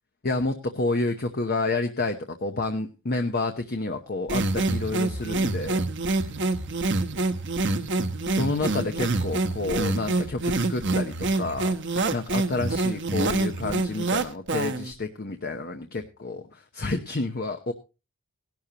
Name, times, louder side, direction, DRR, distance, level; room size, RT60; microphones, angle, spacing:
voice 1, 0.2-5.9 8.3-17.7, left 2 dB, 45° left, 6 dB, 0.9 m, -29 dB
sound 1, 4.3-14.9, right 2 dB, 55° right, 1.1 m, -26 dB
17.5 x 12.0 x 2.9 m, 0.30 s
head